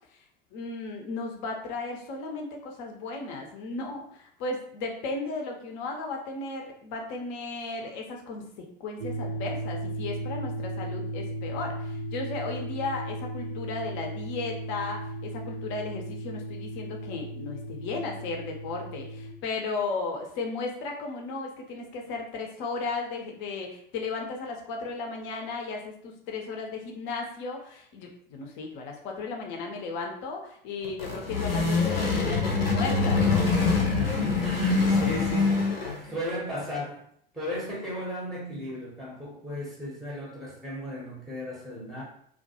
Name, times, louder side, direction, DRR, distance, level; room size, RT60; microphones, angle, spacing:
voice 1, 0.5-33.3, left 3 dB, 40° left, 1 dB, 0.6 m, -35 dB
sound 1, 9.0-19.3, right 1 dB, 35° right, 0.5 m, -36 dB
sound 2, 30.8-36.1, left 4 dB, 85° left, 0.6 m, -24 dB
voice 2, 33.9-37.0 37.3-42.0, left 1 dB, ahead, -4 dB, 0.7 m, -36 dB
2.2 x 2.2 x 2.8 m, 0.64 s
figure-of-eight pair, 75°, 29 cm